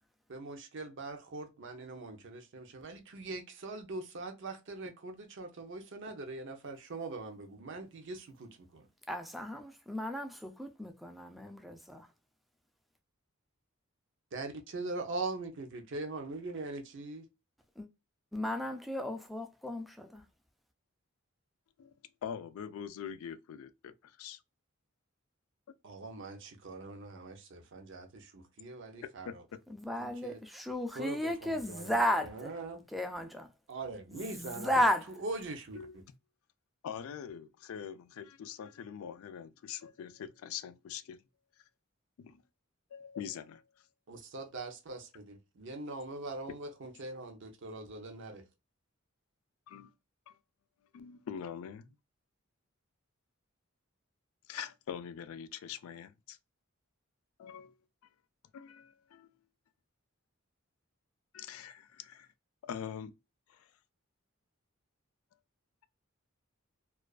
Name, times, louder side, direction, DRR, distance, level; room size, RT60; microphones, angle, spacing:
voice 1, 0.3-8.9 14.3-17.2 25.8-29.4 30.0-30.4 30.9-32.9 33.7-34.8 35.2-36.0 44.1-48.4, right 3 dB, 60° right, 0.6 m, -42 dB
voice 2, 9.1-12.1 17.8-17.9 18.3-20.2 29.7-32.5 32.9-33.5 34.1-35.1, equal, ahead, 0.3 m, -34 dB
voice 3, 22.2-24.4 29.0-29.6 35.8-36.0 36.8-41.2 42.2-42.4 42.9-43.9 49.7-49.9 50.3-50.4 50.9-51.9 54.5-56.4 57.4-57.7 58.5-59.3 61.3-62.3 62.6-63.1 63.5-63.7, left 8 dB, 80° left, 0.3 m, -43 dB
2.3 x 2.3 x 2.3 m
head